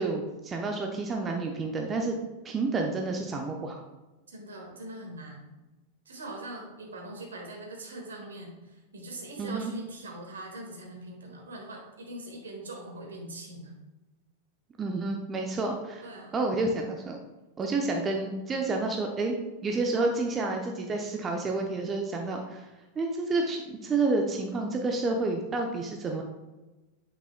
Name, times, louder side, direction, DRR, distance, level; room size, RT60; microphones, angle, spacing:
voice 1, 0.0-2.2 2.4-3.8 9.4-9.7 14.8-16.0 16.3-17.2 17.6-19.4 19.6-22.7 23.0-26.2, right 3 dB, 20° right, 2 dB, 0.8 m, -29 dB
voice 2, 4.3-5.5 6.0-13.7 16.0-16.4, right 1 dB, 70° right, 1 dB, 1.7 m, -42 dB
8.4 x 6.6 x 2.2 m, 1.1 s
figure-of-eight pair, 90°, 0 cm